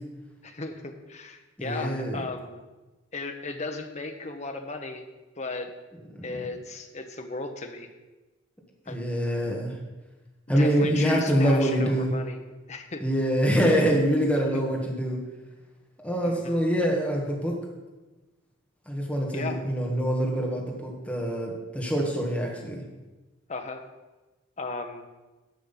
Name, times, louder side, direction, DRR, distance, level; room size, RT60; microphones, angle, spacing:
voice 1, 0.4-2.6 3.1-5.0 5.4-5.7 6.2-7.9 8.9-9.0 10.6-12.4 12.7-13.0 14.3-14.6 16.2-16.6 19.3-19.6 23.5-23.8 24.6-25.1, left 3 dB, 35° left, 5 dB, 0.9 m, -36 dB
voice 2, 1.6-2.2 6.2-6.4 8.8-9.8 10.5-12.1 13.0-15.2 16.0-17.5 18.8-22.8, equal, 5° left, -2 dB, 1.7 m, -25 dB
10.5 x 6.5 x 5.6 m, 1.2 s
head